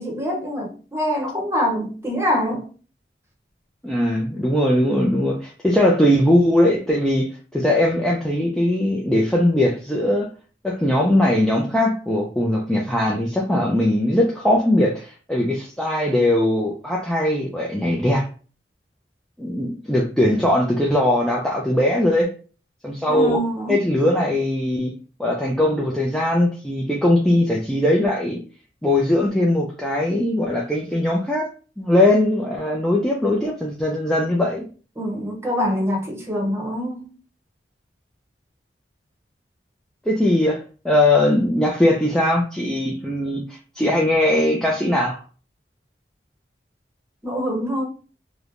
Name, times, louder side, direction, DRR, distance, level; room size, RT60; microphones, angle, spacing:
voice 1, 0.0-2.7 23.1-23.8 35.0-37.1 47.2-47.8, equal, 15° right, 0.8 m, -25 dB
voice 2, 3.8-10.3 10.6-18.3 19.4-22.3 22.8-23.4 23.7-24.9 25.2-28.4 28.8-31.5 31.8-34.6 40.1-45.2, left 1 dB, 5° left, 0.3 m, -20 dB
3.1 x 2.1 x 2.5 m
head